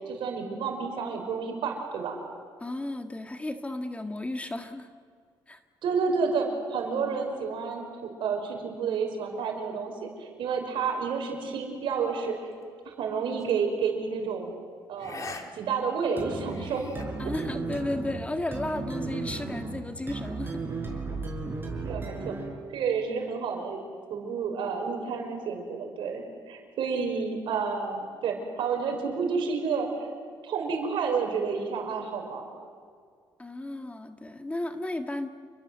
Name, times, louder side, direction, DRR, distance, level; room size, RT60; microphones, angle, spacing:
voice 1, 0.0-2.2 5.8-12.5 12.8-14.5 14.9-16.9 21.6-22.4 22.7-23.8 24.1-30.1 30.4-32.4, right 5 dB, 75° right, 3 dB, 5.8 m, -30 dB
voice 2, 2.6-4.9 5.5-5.6 17.2-20.6 33.4-35.3, left 1 dB, 15° left, 7 dB, 1.7 m, -34 dB
sound 1, 13.4-13.6 15.0-15.4 15.8-15.9 16.4-17.0, left 4 dB, 40° left, 2.5 m, -42 dB
sound 2, 16.2-22.6, right 3 dB, 25° right, 6.4 m, -35 dB
28.5 x 23.0 x 8.0 m, 2.1 s
cardioid pair, 100°, 9 cm